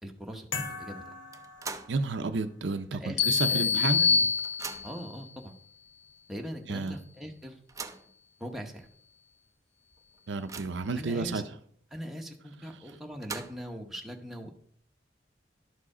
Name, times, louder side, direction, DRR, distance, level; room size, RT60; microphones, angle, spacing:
voice 1, 0.0-1.0 3.0-4.3 4.8-5.6 6.3-7.6 8.4-8.9 11.0-11.4 11.9-14.5, equal, ahead, 1 dB, 1.0 m, -41 dB
sound 1, 0.5-2.4, left 4 dB, 85° left, 1.4 m, -40 dB
sound 2, 1.3-2.1 2.5-2.6 3.6-3.7 4.0-5.1 5.9-6.0 6.4-6.5 7.4-8.1 8.8-8.9 9.3-9.4 9.9-10.9 12.9-13.8, right 4 dB, 15° right, 0.4 m, -42 dB
voice 2, 1.9-4.0 6.7-7.0 10.3-11.4, right 3 dB, 70° right, 9 dB, 0.6 m, -31 dB
sound 3, 3.2-5.1, left 5 dB, 60° left, 0.6 m, -25 dB
12.0 x 4.8 x 4.9 m, 0.63 s
head